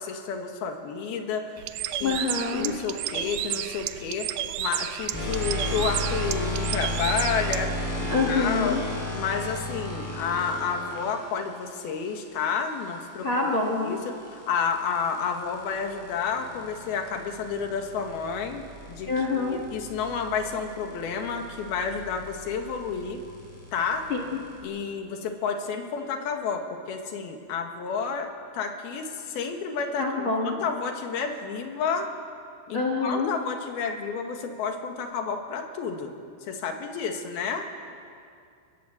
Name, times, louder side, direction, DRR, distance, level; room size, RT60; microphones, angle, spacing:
voice 1, 0.0-1.6 1.9-2.2 2.5-4.3 4.6-7.7 8.0-8.8 9.1-13.3 13.8-23.2 23.7-24.1 24.6-32.1 32.7-36.1 36.5-37.7, left 6 dB, 85° left, 4 dB, 3.6 m, -30 dB
Bird, 1.6-7.7, right 12 dB, 75° right, 1.9 m, -32 dB
voice 2, 2.0-2.7 8.1-8.8 13.2-13.9 19.1-19.6 24.1-24.4 30.0-30.5 32.7-33.3, left 3 dB, 45° left, 1 dB, 1.9 m, -26 dB
sound 1, 5.1-11.1 13.6-24.6, left 1 dB, 5° left, 6.8 m, -35 dB
25.0 x 19.0 x 7.8 m, 2.4 s
omnidirectional pair, 4.3 m